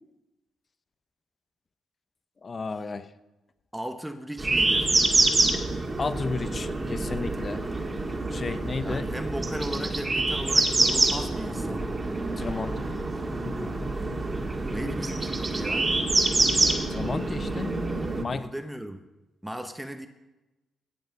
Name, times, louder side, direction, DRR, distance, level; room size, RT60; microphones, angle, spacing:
voice 1, 2.4-3.1 6.0-7.6 8.3-9.0 12.4-12.9 13.3-13.9 16.9-17.7 18.1-18.5, left 4 dB, 40° left, 14 dB, 0.8 m, -33 dB
voice 2, 3.7-5.0 8.8-11.9 14.7-15.9 18.3-19.0 19.4-20.1, right 1 dB, 5° right, 8 dB, 1.0 m, -36 dB
sound 1, 4.4-18.2, right 2 dB, 30° right, 1.9 m, -26 dB
17.5 x 6.6 x 6.7 m, 1.0 s
hypercardioid pair, 40°, 0 cm